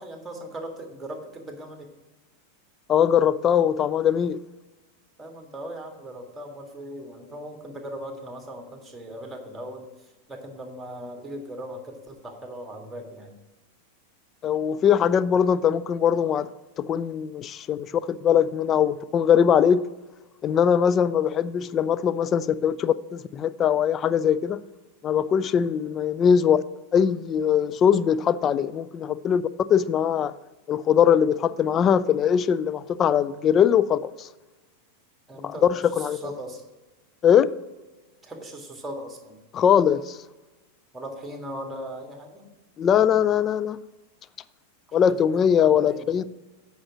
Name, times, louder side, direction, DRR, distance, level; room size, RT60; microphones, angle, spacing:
voice 1, 0.0-1.9 5.2-13.4 35.3-36.6 38.2-39.4 40.9-42.5 44.9-46.1, right 1 dB, 10° right, 1.8 m, -39 dB
voice 2, 2.9-4.4 14.4-16.5 16.8-19.8 20.4-24.6 25.0-26.6 26.9-29.4 29.7-30.3 30.7-34.3 35.4-36.2 37.2-37.5 39.5-40.2 42.8-43.8 44.9-46.2, left 8 dB, 30° left, 0.4 m, -21 dB
8.7 x 5.7 x 6.1 m
figure-of-eight pair, 90°, 0 cm